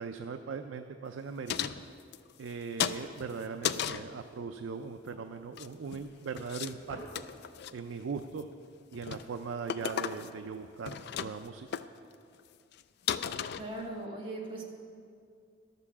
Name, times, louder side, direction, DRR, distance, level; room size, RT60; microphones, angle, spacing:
voice 1, 0.0-1.7 2.4-7.2 7.7-8.5 8.9-11.7, right 5 dB, 85° right, 7 dB, 0.4 m, -39 dB
sound 1, 1.5-2.5 2.8-4.1 5.4-6.0 6.4-6.7 7.0-7.7 8.2-8.5 8.9-9.3 9.7-10.5 10.7-11.5 11.7-11.8 12.4-12.5 12.7-12.8 13.1-14.0, left 8 dB, 60° left, 0.4 m, -35 dB
sound 2, 1.7-11.1, equal, 35° left, 3.0 m, -56 dB
voice 2, 13.6-14.6, right 2 dB, 30° right, -2 dB, 1.5 m, -39 dB
11.5 x 6.8 x 7.1 m, 2.4 s
head